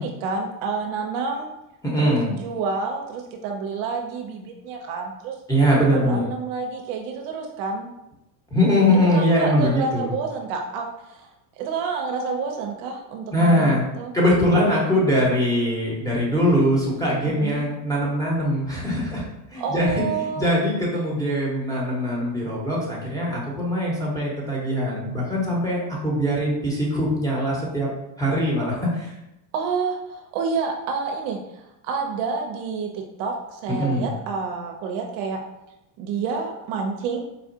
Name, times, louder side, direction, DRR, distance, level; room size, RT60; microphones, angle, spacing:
voice 1, 0.0-1.5 2.0-5.4 6.1-7.9 9.1-14.1 17.2-17.6 19.6-20.6 29.5-35.4 36.0-37.2, right 4 dB, 60° right, 2 dB, 0.7 m, -29 dB
voice 2, 1.8-2.3 5.5-6.2 8.5-10.1 13.3-13.8 14.1-27.9 28.2-29.1 33.7-34.1, equal, 5° left, -5 dB, 1.2 m, -22 dB
4.2 x 2.4 x 2.7 m, 0.89 s
supercardioid pair, 100°, 50 cm